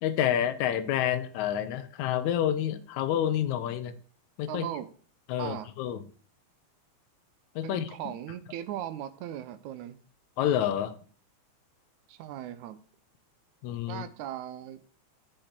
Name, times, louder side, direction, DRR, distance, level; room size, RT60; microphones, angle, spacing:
voice 1, 0.0-3.9 4.4-4.7 5.3-6.0 7.6-7.9 10.4-10.9 13.6-14.0, left 10 dB, 85° left, 2.1 m, -28 dB
voice 2, 4.5-4.9 5.4-5.7 7.6-10.0 12.1-12.8 13.9-14.8, right 11 dB, 85° right, 2.1 m, -38 dB
6.6 x 5.7 x 5.8 m
omnidirectional pair, 3.3 m